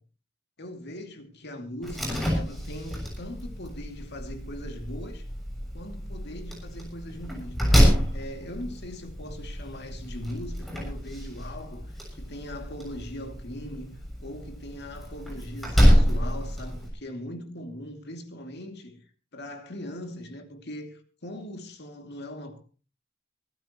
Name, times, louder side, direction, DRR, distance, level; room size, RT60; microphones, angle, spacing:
voice 1, 0.6-5.3 5.7-22.6, left 1 dB, 55° left, 2.5 m, -40 dB
Slam, 1.8-16.9, equal, ahead, 6.9 m, -27 dB
24.0 x 12.5 x 3.0 m
head